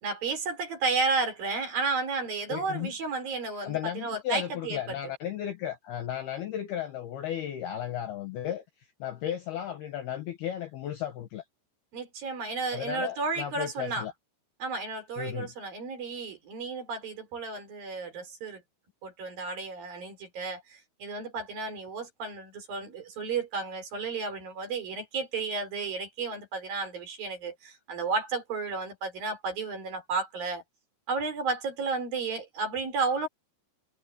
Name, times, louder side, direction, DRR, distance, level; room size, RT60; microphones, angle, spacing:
voice 1, 0.0-5.0 11.9-14.1 14.6-18.6 19.0-30.6 31.1-33.3, right 4 dB, 45° right, 5.7 m, -32 dB
voice 2, 2.5-2.9 3.6-8.6 9.0-11.4 12.7-14.1 15.2-15.5, left 11 dB, 65° left, 2.6 m, -34 dB
omnidirectional pair, 5.9 m